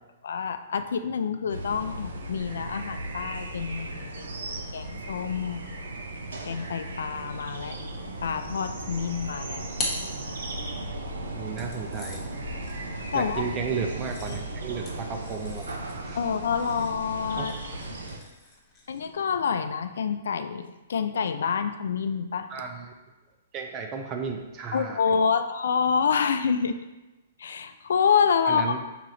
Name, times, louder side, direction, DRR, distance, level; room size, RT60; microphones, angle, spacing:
voice 1, 0.2-5.7 6.4-7.8 8.2-9.6 13.1-13.4 16.1-17.5 18.9-22.5 24.7-26.8 27.4-28.8, left 6 dB, 80° left, 9 dB, 0.4 m, -27 dB
sound 1, 1.5-18.2, right 1 dB, 85° right, 0.7 m, -36 dB
sound 2, 9.8-10.9 11.6-19.2, left 2 dB, 20° left, 1.0 m, -41 dB
voice 2, 11.4-12.3 13.1-15.7 16.0-16.2 17.4-17.5 22.5-22.9 23.5-25.0 28.5-28.8, right 6 dB, 25° right, 4 dB, 0.4 m, -33 dB
4.8 x 2.9 x 3.8 m, 1.1 s
hypercardioid pair, 150°, 0 cm